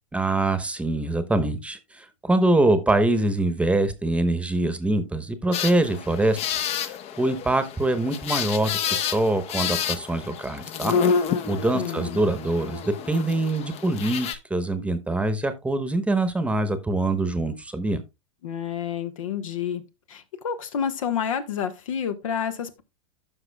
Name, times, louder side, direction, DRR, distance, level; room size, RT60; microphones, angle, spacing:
voice 1, 0.1-18.0, right 2 dB, 5° right, 1.0 m, -24 dB
sound 1, 5.5-14.3, left 7 dB, 35° left, 0.8 m, -29 dB
voice 2, 11.7-12.2 18.4-19.8 20.1-22.8, left 8 dB, 75° left, 1.2 m, -29 dB
14.5 x 5.8 x 2.2 m
hypercardioid pair, 105°, 17 cm